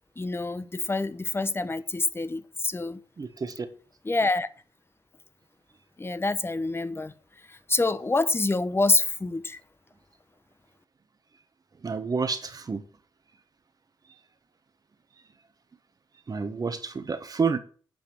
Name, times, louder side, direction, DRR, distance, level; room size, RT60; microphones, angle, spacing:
voice 1, 0.2-3.0 4.1-4.5 6.0-7.1 7.5-9.6, left 3 dB, 25° left, 1.0 m, -26 dB
voice 2, 3.2-3.7 11.8-12.8 14.1-14.2 16.3-17.6, right 5 dB, 45° right, 1.4 m, -29 dB
9.1 x 5.1 x 7.8 m
supercardioid pair, 50°, 9 cm